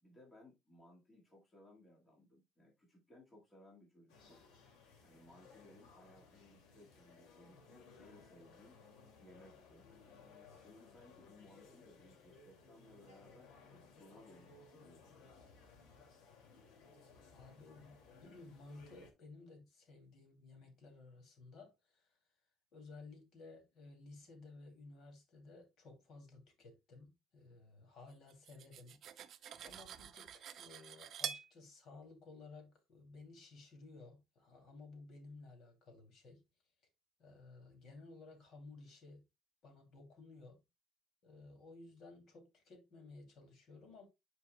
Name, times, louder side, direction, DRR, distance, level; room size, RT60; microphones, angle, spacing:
voice 1, 0.0-4.4 5.0-8.8 9.2-9.9 10.5-15.3, left 1 dB, 20° left, 1.8 m, -62 dB
sound 1, 4.1-19.1, left 4 dB, 90° left, 2.3 m, -61 dB
voice 2, 17.3-22.2 22.7-29.0 29.6-36.4 37.2-39.2 39.6-40.6 41.2-44.1, left 3 dB, 55° left, 2.6 m, -56 dB
Cutlery silverware, 28.3-31.5, right 9 dB, 50° right, 0.6 m, -46 dB
9.8 x 4.7 x 2.2 m
cardioid pair, 140°, 0 cm